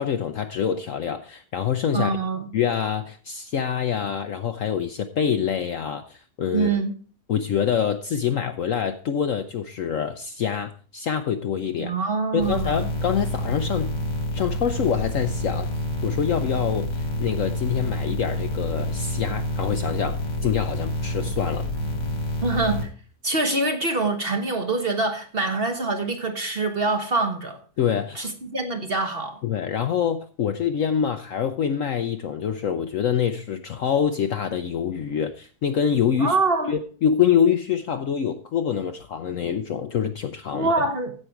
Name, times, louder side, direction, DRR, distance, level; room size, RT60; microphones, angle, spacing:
voice 1, 0.0-2.1 2.5-6.7 7.3-11.9 12.3-13.9 14.3-15.7 16.0-21.7 27.8-28.3 29.4-36.4 36.7-40.7, left 8 dB, 65° left, 0.9 m, -25 dB
voice 2, 1.9-2.5 6.5-6.9 11.8-12.9 22.4-22.9 23.2-27.6 28.1-29.4 36.2-36.7 40.5-41.1, right 3 dB, 40° right, 1.1 m, -25 dB
sound 1, 12.4-22.8, left 1 dB, 85° left, 2.9 m, -28 dB
15.0 x 5.4 x 4.6 m
omnidirectional pair, 1.9 m